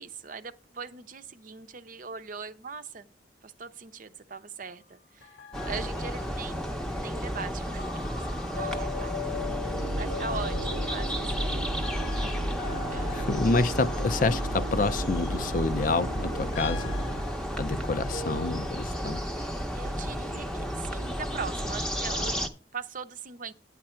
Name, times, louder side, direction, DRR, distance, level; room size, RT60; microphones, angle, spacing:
voice 1, 0.0-3.1 3.4-5.4 5.7-7.9 8.3-9.2 9.9-11.8 12.1-12.3 12.9-13.2 19.4-23.5, right 5 dB, 45° right, 0.7 m, -41 dB
sound 1, 5.2-18.7, left 4 dB, 85° left, 1.4 m, -41 dB
sound 2, 5.5-22.5, equal, 5° left, 0.8 m, -33 dB
sound 3, 9.3-17.6, right 1 dB, 85° right, 0.8 m, -35 dB
voice 2, 13.1-16.9 17.6-19.2, left 3 dB, 45° left, 0.5 m, -28 dB
9.5 x 8.9 x 4.4 m
head